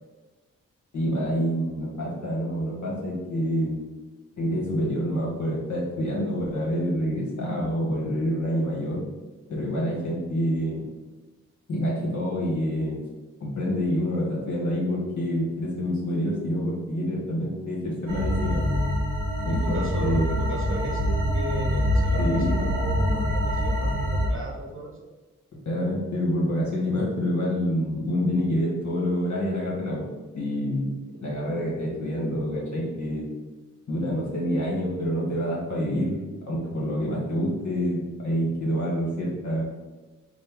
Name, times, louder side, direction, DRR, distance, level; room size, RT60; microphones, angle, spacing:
voice 1, 0.9-3.9 4.4-9.0 9.5-10.9 11.7-13.0 13.4-18.6 19.4-20.4 22.2-22.6 25.6-30.0 30.3-33.3 33.9-39.6, equal, 65° left, -4 dB, 1.4 m, -27 dB
sound 1, 18.1-24.3, equal, 85° right, 0.8 m, -25 dB
voice 2, 19.4-25.0, equal, 40° right, 1 dB, 0.8 m, -35 dB
4.1 x 2.2 x 3.4 m, 1.2 s
supercardioid pair, 45°, 31 cm